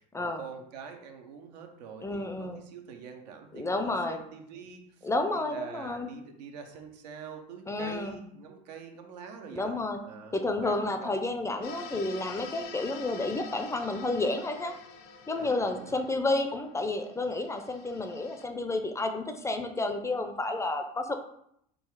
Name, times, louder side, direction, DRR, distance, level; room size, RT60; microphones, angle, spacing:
voice 1, 0.0-9.8 10.0-11.2 15.3-15.9, right 6 dB, 85° right, 4 dB, 0.8 m, -45 dB
voice 2, 2.0-2.6 3.5-4.2 5.0-6.1 7.7-8.2 9.5-10.0 10.3-14.7 15.3-21.2, left 2 dB, 15° left, 6 dB, 0.5 m, -31 dB
sound 1, 11.6-18.5, left 4 dB, 50° left, 0.7 m, -46 dB
3.9 x 2.3 x 4.6 m, 0.72 s
supercardioid pair, 95°, 21 cm